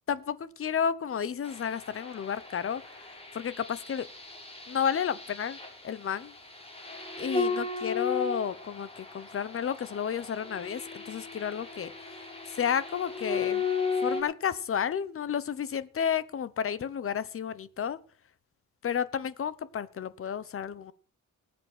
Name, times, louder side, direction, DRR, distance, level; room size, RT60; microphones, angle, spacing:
voice 1, 0.1-4.1 4.7-5.6 5.8-6.3 7.2-13.6 14.0-18.0 18.8-20.9, left 8 dB, 45° left, 1.0 m, -32 dB
sound 1, 1.4-14.2, left 4 dB, 20° left, 4.4 m, -36 dB
19.0 x 8.3 x 6.2 m
wide cardioid pair, 170°, 32 cm